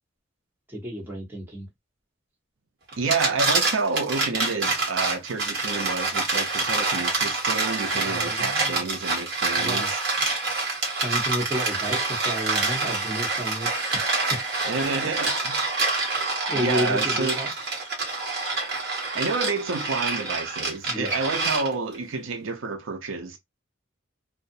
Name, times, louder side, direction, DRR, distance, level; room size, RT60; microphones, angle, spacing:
voice 1, 0.7-1.7 7.9-8.8 9.5-9.9 10.9-14.4 15.0-15.2 16.5-17.5 20.9-21.2, equal, 10° right, 1.0 m, -32 dB
sound 1, 2.9-22.0, right 3 dB, 55° right, 1.0 m, -26 dB
voice 2, 3.0-10.0 14.7-15.7 16.5-17.4 19.1-23.4, right 4 dB, 90° right, 0.6 m, -29 dB
2.4 x 2.1 x 2.6 m
head